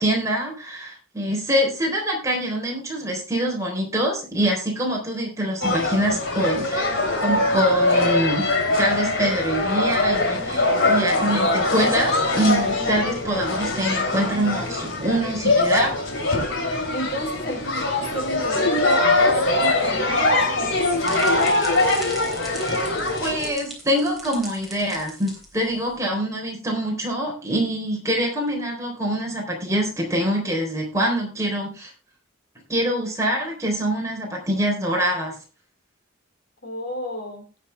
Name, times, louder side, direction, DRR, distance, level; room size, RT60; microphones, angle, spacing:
voice 1, 0.0-16.0 23.2-31.9 32.7-35.4, equal, 15° right, 0 dB, 3.7 m, -25 dB
sound 1, 5.6-23.5, left 2 dB, 75° left, 2.9 m, -22 dB
voice 2, 16.9-21.6 36.6-37.5, equal, 55° left, 4 dB, 3.2 m, -31 dB
sound 2, 20.9-25.9, right 1 dB, ahead, 3.4 m, -40 dB
17.0 x 7.0 x 3.4 m, 0.33 s
head